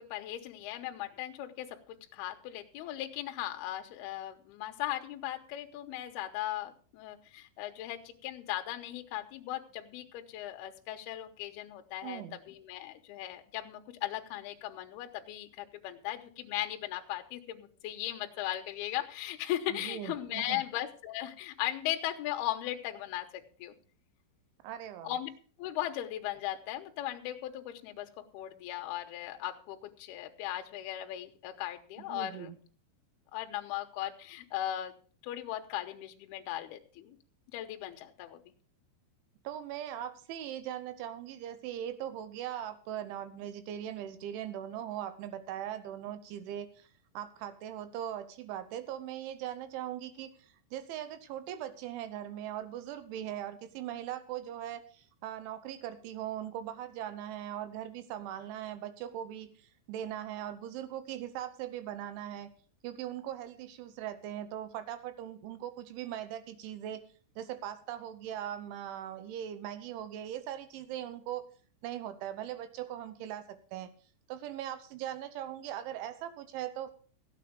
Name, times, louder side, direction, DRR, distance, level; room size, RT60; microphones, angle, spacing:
voice 1, 0.0-23.7 25.0-25.3 25.6-32.5 33.3-34.9 35.2-37.2 37.5-38.4, left 13 dB, 80° left, 5 dB, 2.3 m, -38 dB
voice 2, 12.0-12.4 19.7-20.6 24.6-25.1 32.0-32.6 39.4-46.9 47.1-62.5 62.8-67.0 67.4-71.4 71.8-73.9 74.3-76.9, right 11 dB, 75° right, 11 dB, 3.1 m, -40 dB
14.5 x 9.0 x 5.2 m, 0.42 s
omnidirectional pair, 5.9 m